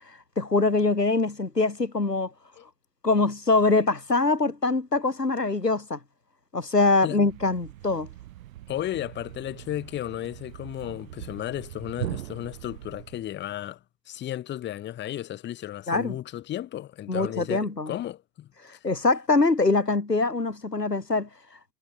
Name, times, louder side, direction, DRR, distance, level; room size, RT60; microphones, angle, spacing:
voice 1, 0.1-2.3 3.0-6.0 6.5-8.1 15.9-16.2 17.1-18.0 18.6-21.3, left 3 dB, 90° left, 1.7 m, -24 dB
Thump thud, 7.1-13.3, right 14 dB, 55° right, 3.2 m, -41 dB
voice 2, 8.7-13.8 14.1-18.9, left 12 dB, 25° left, 1.2 m, -34 dB
figure-of-eight pair, 90°, 47 cm